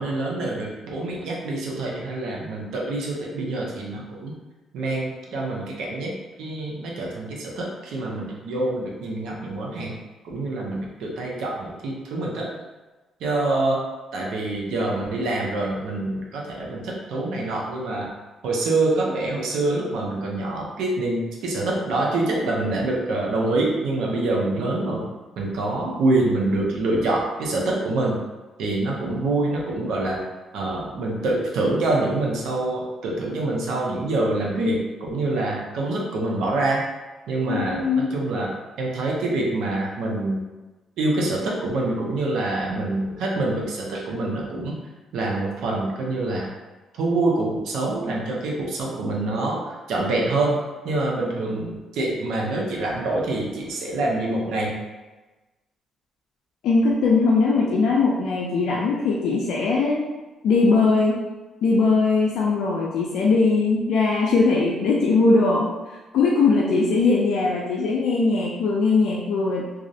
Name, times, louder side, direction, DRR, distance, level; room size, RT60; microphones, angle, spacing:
voice 1, 0.0-4.4 4.7-10.0 10.2-12.5 13.2-13.8 14.1-18.1 18.4-25.0 25.4-28.2 28.6-30.2 30.5-36.8 37.3-40.4 41.0-44.8 45.1-46.5 46.9-50.6 50.8-54.8, right 2 dB, 80° right, -2 dB, 0.5 m, -25 dB
voice 2, 37.5-38.1 56.6-60.0 60.4-61.2 61.6-65.7 66.1-69.7, left 3 dB, 80° left, -4 dB, 0.3 m, -20 dB
2.4 x 2.0 x 2.6 m, 1.2 s
cardioid pair, 90°, 0 cm